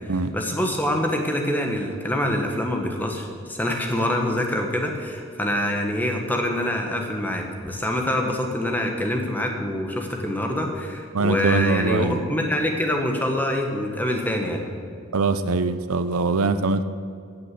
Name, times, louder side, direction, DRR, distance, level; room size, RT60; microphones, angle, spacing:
voice 1, 0.3-14.6, left 1 dB, 10° left, 2 dB, 1.4 m, -25 dB
voice 2, 11.1-12.2 15.1-16.8, right 3 dB, 85° right, 11 dB, 0.7 m, -22 dB
16.5 x 6.6 x 7.7 m, 2.3 s
head